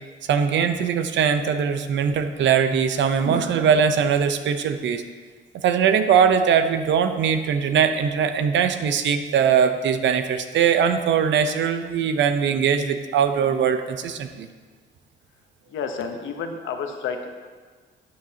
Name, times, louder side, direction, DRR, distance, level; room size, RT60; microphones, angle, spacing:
voice 1, 0.3-5.0 5.6-14.5, right 7 dB, 65° right, 9 dB, 0.7 m, -21 dB
voice 2, 15.7-17.3, left 5 dB, 75° left, 5 dB, 0.9 m, -30 dB
12.0 x 7.6 x 2.8 m, 1.5 s
cardioid pair, 90°, 20 cm